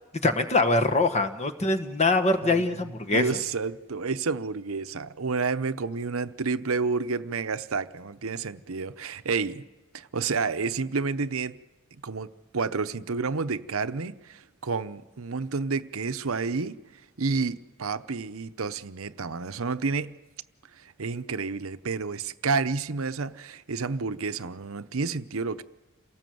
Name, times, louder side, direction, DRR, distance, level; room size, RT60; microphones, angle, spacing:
voice 1, 0.2-3.2, left 2 dB, 30° left, 1.4 m, -23 dB
voice 2, 3.1-9.6 9.9-11.6 11.9-20.1 20.7-25.6, right 4 dB, 70° right, 0.8 m, -30 dB
28.5 x 18.5 x 7.8 m
head